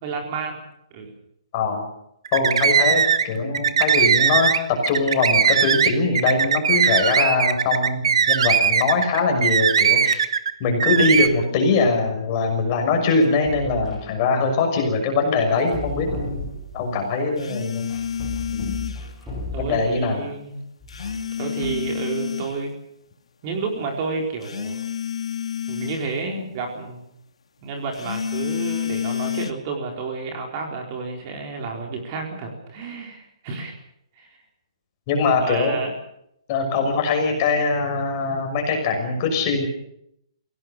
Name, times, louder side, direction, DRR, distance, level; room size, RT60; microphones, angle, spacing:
voice 1, 0.0-0.6 0.9-1.1 19.5-20.6 21.4-22.8 23.4-24.8 25.7-27.0 27.6-33.7 34.2-34.4 35.4-35.9 36.7-36.8, right 4 dB, 30° right, 2 dB, 4.3 m, -30 dB
voice 2, 1.5-1.9 2.3-4.5 4.9-10.3 10.6-16.5 16.7-17.9 18.5-18.8 19.6-20.3 35.1-35.8 36.5-39.7, left 4 dB, 30° left, 3 dB, 6.1 m, -22 dB
sound 1, 2.2-3.3 3.5-10.5 10.8-11.3, right 7 dB, 65° right, 1.6 m, -19 dB
sound 2, 11.0-11.3 13.2-14.1 15.6-16.9 17.9-20.1 20.8-21.9, left 2 dB, ahead, 7.7 m, -35 dB
sound 3, 17.4-19.1 20.9-22.6 24.4-26.1 27.9-29.5, left 8 dB, 85° left, 2.1 m, -29 dB
25.5 x 17.5 x 6.7 m, 0.73 s
hypercardioid pair, 165°, 3 cm